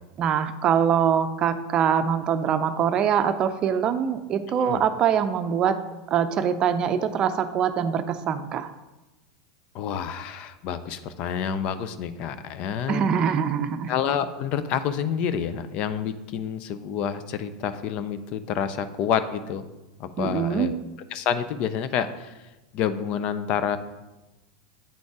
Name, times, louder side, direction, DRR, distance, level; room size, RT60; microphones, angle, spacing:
voice 1, 0.2-5.8 6.1-8.7 12.9-13.9 20.2-20.7, right 8 dB, 40° right, 10 dB, 0.5 m, -23 dB
voice 2, 4.5-4.8 9.7-13.1 13.9-19.6 20.0-20.8 21.1-22.3 22.7-23.8, left 8 dB, 50° left, 12 dB, 0.5 m, -28 dB
8.6 x 3.8 x 3.6 m, 1.1 s
hypercardioid pair, 100°, 2 cm